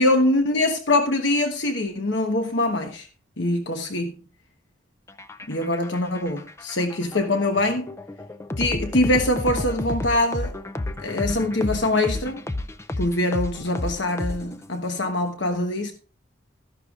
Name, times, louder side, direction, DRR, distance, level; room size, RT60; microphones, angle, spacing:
voice 1, 0.0-3.1 3.4-4.2 5.5-7.9 8.6-10.5 11.0-12.4 13.0-15.9, left 1 dB, 60° left, 1.1 m, -23 dB
sound 1, 5.1-14.8, left 1 dB, 15° left, 0.4 m, -31 dB
14.0 x 11.0 x 2.4 m
head